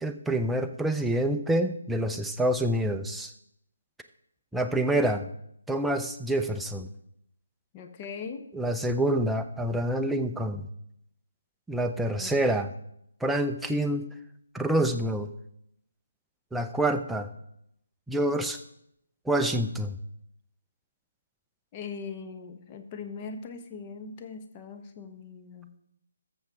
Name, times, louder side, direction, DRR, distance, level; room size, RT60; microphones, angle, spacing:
voice 1, 0.0-3.3 4.5-5.3 5.7-6.9 8.5-10.7 11.7-12.7 13.2-14.1 14.5-15.3 16.5-17.3 18.1-18.6 19.3-20.0, right 1 dB, 5° right, 6 dB, 0.5 m, -27 dB
voice 2, 7.7-8.4 12.2-12.3 21.7-25.7, left 5 dB, 25° left, 6 dB, 1.0 m, -40 dB
14.0 x 7.1 x 3.6 m, 0.77 s
figure-of-eight pair, 145°, 0 cm